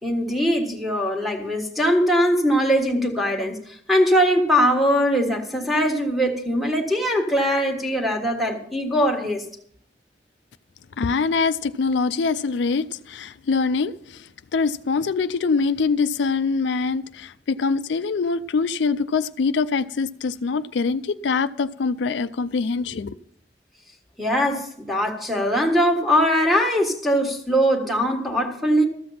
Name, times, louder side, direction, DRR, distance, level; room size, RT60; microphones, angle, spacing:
voice 1, 0.0-9.4 24.2-28.9, equal, ahead, 1.4 m, -21 dB
voice 2, 11.0-14.2 14.5-23.1, left 4 dB, 80° left, 0.4 m, -24 dB
13.5 x 7.7 x 5.6 m
head